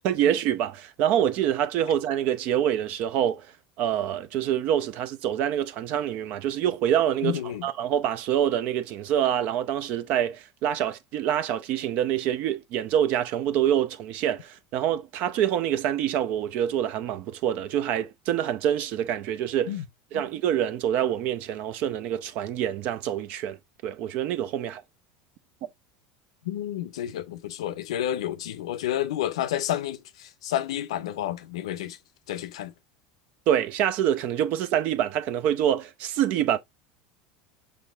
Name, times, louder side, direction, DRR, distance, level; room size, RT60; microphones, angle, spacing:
voice 1, 0.0-3.5 3.8-19.8 20.1-23.6 23.8-24.8 33.5-36.6, right 10 dB, 60° right, 0.5 m, -26 dB
voice 2, 7.2-7.7 19.7-19.8 20.1-20.2 26.5-32.0 32.3-32.7, left 12 dB, 85° left, 0.5 m, -30 dB
5.4 x 3.3 x 2.3 m
hypercardioid pair, 95°, 3 cm